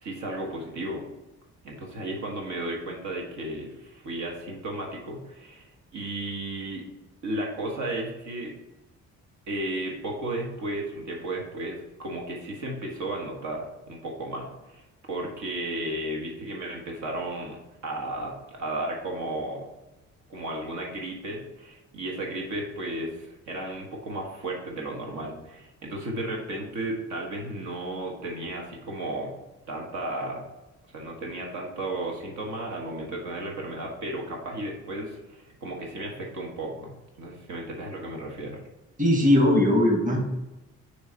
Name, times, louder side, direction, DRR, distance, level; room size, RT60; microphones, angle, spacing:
voice 1, 0.0-1.0 1.6-6.8 7.2-8.5 9.5-17.6 17.8-19.7 20.3-29.4 29.7-30.4 30.9-38.6, right 1 dB, 70° right, -1 dB, 1.4 m, -34 dB
voice 2, 39.0-40.2, left 1 dB, 25° right, 0 dB, 1.4 m, -19 dB
6.7 x 3.2 x 4.5 m, 1.0 s
cardioid pair, 90°, 30 cm